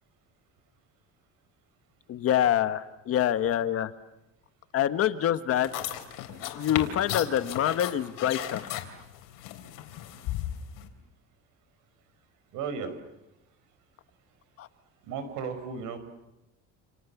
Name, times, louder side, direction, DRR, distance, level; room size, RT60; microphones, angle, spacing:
voice 1, 2.1-3.9 4.7-5.7 6.5-8.7 14.6-14.7, left 10 dB, 45° left, 11 dB, 1.3 m, -26 dB
sound 1, 5.6-10.9, left 12 dB, 80° left, 3.8 m, -36 dB
voice 2, 12.5-13.0 15.0-16.0, right 6 dB, 75° right, 10 dB, 5.3 m, -34 dB
29.0 x 28.5 x 7.2 m, 0.93 s
cardioid pair, 155°, 32 cm